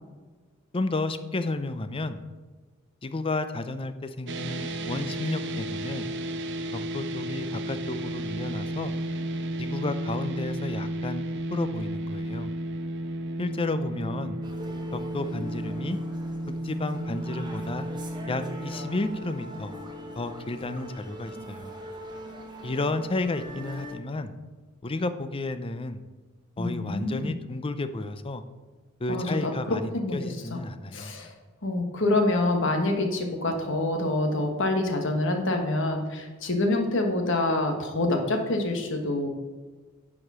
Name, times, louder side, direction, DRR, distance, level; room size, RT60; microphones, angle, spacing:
voice 1, 0.7-2.2 3.0-6.1 6.7-8.9 9.6-11.2 11.5-12.5 13.4-14.4 14.9-16.0 16.6-17.8 18.3-19.7 20.2-21.7 22.6-24.3 24.8-26.0 26.6-28.4 29.0-31.1, left 2 dB, 25° left, 11 dB, 0.5 m, -32 dB
sound 1, 4.3-20.6, right 1 dB, 60° right, 0.7 m, -33 dB
sound 2, 14.4-24.0, equal, 20° right, 1.1 m, -41 dB
voice 2, 26.6-27.3 29.1-29.5 29.9-30.1 30.5-30.6 30.9-31.3 31.6-39.3, left 2 dB, 65° left, 3 dB, 1.4 m, -26 dB
9.8 x 4.9 x 6.1 m, 1.3 s
head